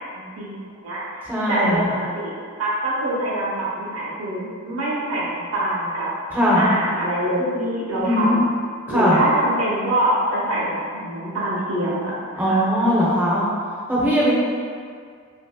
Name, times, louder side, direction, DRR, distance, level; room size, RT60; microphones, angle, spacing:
voice 1, 0.0-1.8 2.1-2.3 2.6-6.1 6.5-8.4 8.9-12.7, right 1 dB, 80° right, -7 dB, 0.8 m, -25 dB
voice 2, 1.3-1.9 6.3-6.7 8.0-8.4 8.9-9.2 12.4-13.4 13.9-14.3, equal, 10° right, -8 dB, 0.5 m, -19 dB
2.8 x 2.5 x 2.3 m, 2.1 s
head